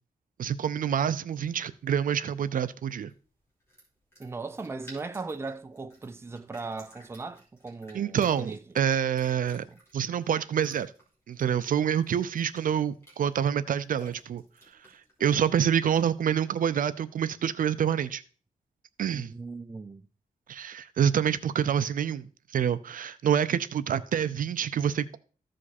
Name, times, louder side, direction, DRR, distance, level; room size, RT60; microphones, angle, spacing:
voice 1, 0.4-3.1 7.9-9.6 9.9-10.9 11.3-14.4 15.2-18.2 19.0-19.3 20.5-25.2, right 8 dB, 70° right, 0.5 m, -27 dB
sound 1, 1.4-16.2, right 1 dB, 20° left, 3.3 m, -57 dB
voice 2, 4.2-8.6 9.7-9.8 19.1-20.1, right 3 dB, 15° right, 0.5 m, -38 dB
14.0 x 5.1 x 4.2 m
wide cardioid pair, 170°, 15 cm